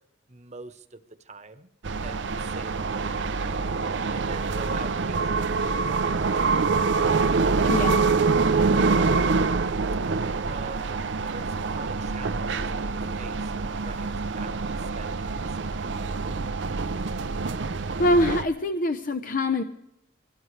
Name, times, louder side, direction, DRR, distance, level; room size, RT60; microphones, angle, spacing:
voice 1, 0.3-1.7 2.0-3.7 4.1-8.2 10.4-16.0, right 3 dB, 40° right, 10 dB, 1.1 m, -45 dB
sound 1, 1.8-18.4, right 4 dB, 75° right, 0.6 m, -25 dB
voice 2, 7.7-8.0 18.0-19.6, left 1 dB, 50° left, 8 dB, 0.8 m, -24 dB
24.5 x 18.0 x 3.3 m, 0.82 s
head